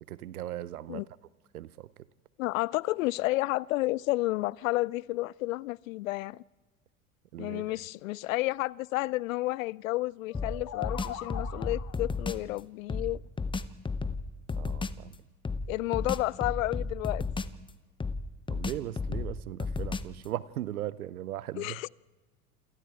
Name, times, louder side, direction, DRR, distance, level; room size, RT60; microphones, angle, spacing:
voice 1, 0.1-1.0 1.5-1.9 7.3-7.6 14.5-15.1 18.5-21.8, right 13 dB, 75° right, 0.8 m, -38 dB
voice 2, 2.4-6.4 7.4-13.2 15.7-17.2 21.5-21.9, left 19 dB, 65° left, 0.6 m, -31 dB
sound 1, 10.3-12.1, left 11 dB, 45° left, 2.2 m, -40 dB
sound 2, 10.3-12.5 12.9-15.0 15.4-17.7 18.0-20.2, left 4 dB, 10° left, 0.8 m, -34 dB
28.0 x 27.5 x 3.6 m
figure-of-eight pair, 80°, 44 cm